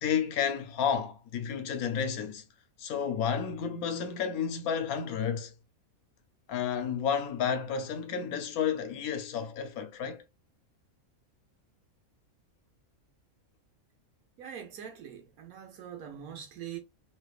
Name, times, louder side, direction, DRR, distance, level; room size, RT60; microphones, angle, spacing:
voice 1, 0.0-2.4 2.8-5.5 6.5-10.2, left 7 dB, 85° left, 1.1 m, -31 dB
voice 2, 14.4-16.8, right 9 dB, 80° right, 1.1 m, -43 dB
3.3 x 2.9 x 2.3 m
omnidirectional pair, 1.5 m